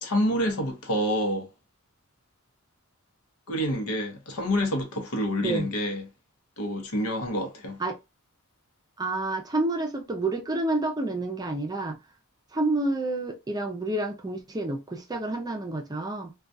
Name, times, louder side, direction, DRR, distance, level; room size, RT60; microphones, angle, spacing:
voice 1, 0.0-1.5 3.5-6.1 6.6-7.8, equal, 85° left, 0.8 m, -27 dB
voice 2, 9.0-12.0 12.5-16.3, right 2 dB, 20° right, 0.4 m, -29 dB
2.2 x 2.2 x 2.6 m
head